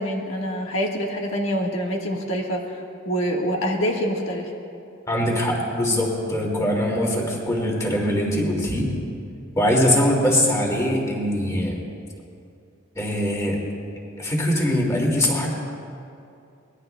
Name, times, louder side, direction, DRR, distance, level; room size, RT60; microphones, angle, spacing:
voice 1, 0.0-4.5, equal, 70° left, 0 dB, 1.5 m, -26 dB
voice 2, 5.1-8.9 9.6-11.8 13.0-13.6 14.2-15.5, left 1 dB, 15° left, -2 dB, 2.2 m, -22 dB
24.5 x 20.5 x 2.2 m, 2.5 s
head